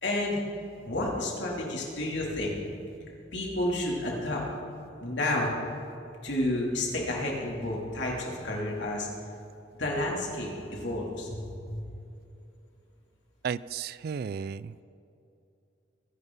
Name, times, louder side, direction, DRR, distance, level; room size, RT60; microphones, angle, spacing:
voice 1, 0.0-0.4 0.8-2.5 3.3-4.4 5.0-5.5 6.2-9.1 9.8-11.4 11.7-11.8, left 1 dB, 65° left, -3 dB, 3.3 m, -30 dB
voice 2, 13.4-14.8, right 6 dB, 55° right, 18 dB, 0.3 m, -34 dB
23.5 x 11.0 x 4.1 m, 2.7 s
head